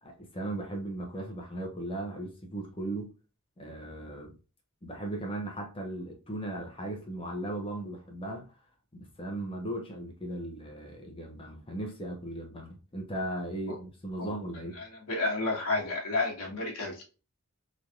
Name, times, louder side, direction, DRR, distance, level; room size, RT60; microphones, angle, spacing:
voice 1, 0.0-3.1 3.6-4.3 4.8-8.5 8.9-14.8, right 1 dB, 25° left, 0.8 m, -37 dB
voice 2, 14.8-17.0, left 2 dB, 80° left, 1.2 m, -31 dB
3.1 x 2.8 x 2.3 m
head